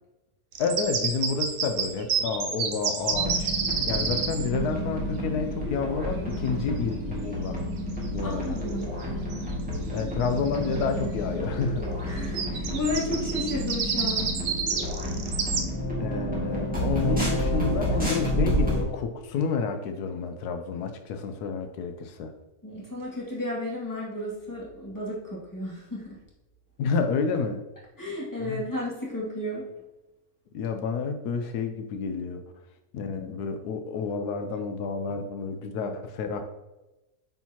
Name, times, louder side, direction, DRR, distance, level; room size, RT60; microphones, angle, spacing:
sound 1, 0.5-4.5 7.9-8.1 8.6-9.0 9.3-9.4 9.7-10.8 12.2-15.6, right 6 dB, 60° right, 0.9 m, -29 dB
voice 1, 0.6-3.5 3.9-7.6 8.1-8.6 9.9-11.9 16.0-22.3 26.8-27.6 28.4-28.6 30.5-32.4 32.9-36.4, left 5 dB, 85° left, 7 dB, 1.2 m, -29 dB
sound 2, 3.1-18.8, equal, 5° right, 1.8 m, -30 dB
voice 2, 8.2-8.9 12.1-14.3 22.6-26.2 28.0-29.7, left 1 dB, 10° left, -6 dB, 2.0 m, -33 dB
9.1 x 4.5 x 2.9 m, 1.0 s
omnidirectional pair, 1.6 m